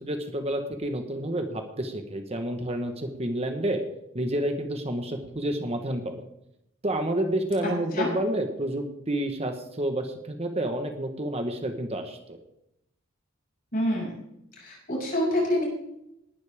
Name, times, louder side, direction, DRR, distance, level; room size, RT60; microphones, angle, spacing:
voice 1, 0.0-3.8 4.1-6.1 6.8-12.4, right 1 dB, 30° right, 5 dB, 1.3 m, -29 dB
voice 2, 7.6-8.1 13.7-14.1 14.6-15.7, left 1 dB, 45° left, -2 dB, 6.6 m, -27 dB
18.5 x 11.5 x 3.6 m, 0.83 s
head